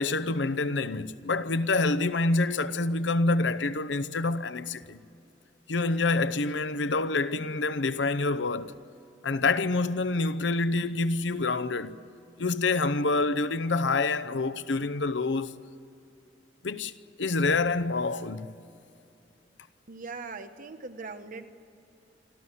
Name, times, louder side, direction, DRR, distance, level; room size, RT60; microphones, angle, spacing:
voice 1, 0.0-5.0 5.7-8.8 9.2-12.0 12.4-15.6 16.6-16.9 17.2-18.6, left 3 dB, 85° left, 0.8 m, -27 dB
voice 2, 19.9-21.5, right 4 dB, 50° right, 1.2 m, -40 dB
26.5 x 13.5 x 9.8 m
head